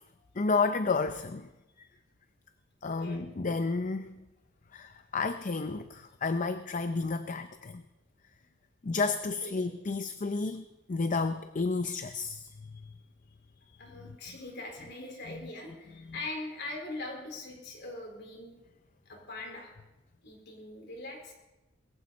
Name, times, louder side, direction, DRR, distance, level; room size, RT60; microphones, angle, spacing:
voice 1, 0.4-1.5 2.8-4.2 4.7-7.8 8.8-12.5 15.3-15.4, left 4 dB, 40° left, 10 dB, 0.5 m, -31 dB
voice 2, 2.8-3.2 9.4-9.7 13.6-18.6 19.1-19.7 20.2-21.3, left 2 dB, 55° left, 1 dB, 4.3 m, -42 dB
22.0 x 15.0 x 4.1 m, 1.0 s
head